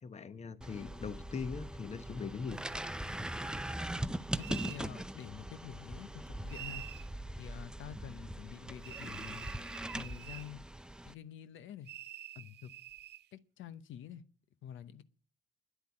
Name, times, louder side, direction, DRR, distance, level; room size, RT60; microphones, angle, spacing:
voice 1, 0.0-2.6, left 5 dB, 35° left, 0.9 m, -40 dB
sound 1, 0.6-11.1, right 1 dB, 5° right, 0.6 m, -41 dB
voice 2, 4.4-6.8 7.4-9.5 9.9-10.7 11.0-11.9 12.3-12.7 13.3-14.2 14.6-15.0, left 9 dB, 80° left, 0.9 m, -47 dB
sound 2, 4.4-4.8 6.5-7.1 8.8-10.5 11.8-13.2, right 12 dB, 60° right, 0.5 m, -47 dB
10.5 x 8.1 x 9.8 m
cardioid pair, 90°, 20 cm